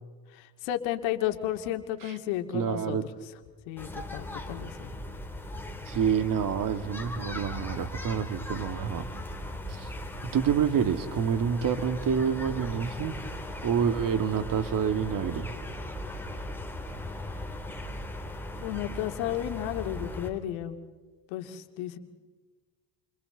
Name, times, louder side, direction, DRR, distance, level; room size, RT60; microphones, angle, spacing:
voice 1, 0.4-3.0 3.7-5.0 18.6-20.8 21.3-22.0, left 12 dB, 65° left, 6 dB, 2.4 m, -33 dB
voice 2, 2.5-3.0 5.9-9.1 9.8-9.9 10.3-13.1 13.6-15.5, right 7 dB, 40° right, 10 dB, 2.0 m, -28 dB
sound 1, 3.8-20.3, left 1 dB, 5° left, 3.1 m, -38 dB
29.0 x 29.0 x 3.9 m, 1.4 s
hypercardioid pair, 90°, 49 cm